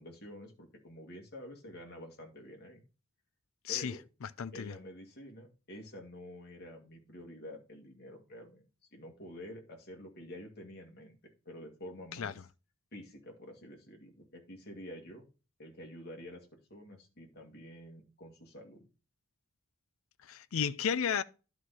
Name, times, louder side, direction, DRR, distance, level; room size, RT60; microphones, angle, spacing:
voice 1, 0.0-2.8 3.7-4.0 4.5-8.7 8.9-12.4 12.9-15.2 15.6-18.9, equal, 45° left, 2.1 m, -49 dB
voice 2, 4.2-4.8 12.2-12.3 20.2-21.2, left 7 dB, 70° left, 0.5 m, -33 dB
11.0 x 4.9 x 4.1 m
head